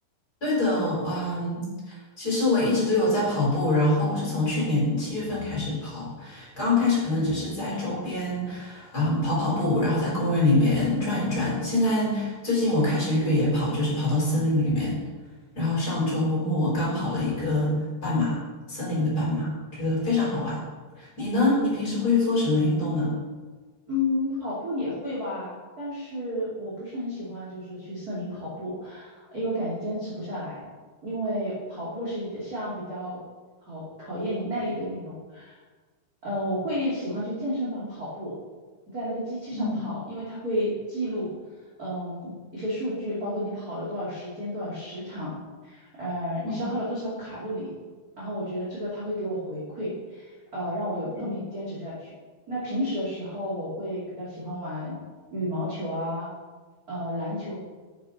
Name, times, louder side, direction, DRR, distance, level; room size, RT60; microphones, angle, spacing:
voice 1, 0.4-15.0 15.5-17.7 18.0-18.4 18.7-20.6 21.0-23.1 39.6-39.8 46.4-46.8 51.1-51.3, left 2 dB, 20° left, -6 dB, 4.4 m, -25 dB
voice 2, 23.9-30.6 31.0-33.2 33.7-35.5 36.2-38.3 38.9-41.3 41.8-47.7 48.2-52.1 52.5-55.0 55.3-56.3 56.9-57.5, equal, 25° right, -9 dB, 2.4 m, -32 dB
9.8 x 9.7 x 5.4 m, 1.4 s
omnidirectional pair, 5.6 m